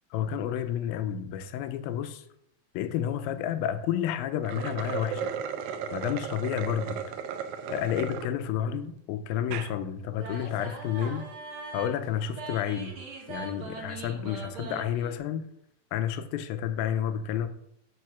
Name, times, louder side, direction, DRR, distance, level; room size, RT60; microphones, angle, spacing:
voice 1, 0.1-2.2 2.7-5.3 5.9-7.1 7.7-11.2 11.7-13.0 13.3-15.5 15.9-17.5, left 9 dB, 85° left, 2.4 m, -30 dB
sound 1, 4.3-8.3 8.8-8.9 9.4-9.7, right 7 dB, 85° right, 1.6 m, -35 dB
sound 2, 10.2-15.2, right 3 dB, 55° right, 1.7 m, -41 dB
6.2 x 5.5 x 5.9 m
omnidirectional pair, 4.1 m